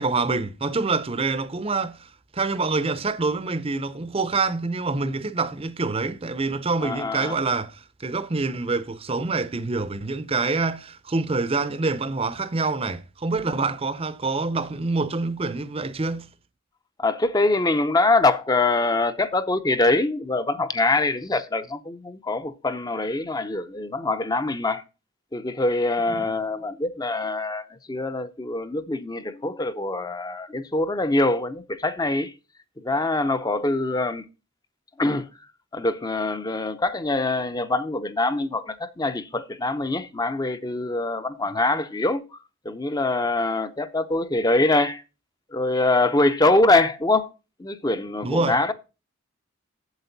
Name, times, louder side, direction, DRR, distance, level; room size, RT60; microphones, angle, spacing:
voice 1, 0.0-16.3 26.2-26.3 48.2-48.6, right 3 dB, 30° right, 0.6 m, -26 dB
voice 2, 6.8-7.3 17.0-24.8 25.3-32.3 32.8-34.2 35.0-35.3 35.7-42.2 42.6-45.0 45.5-47.3 47.6-48.7, left 2 dB, 20° left, 0.6 m, -24 dB
8.1 x 7.5 x 4.0 m
head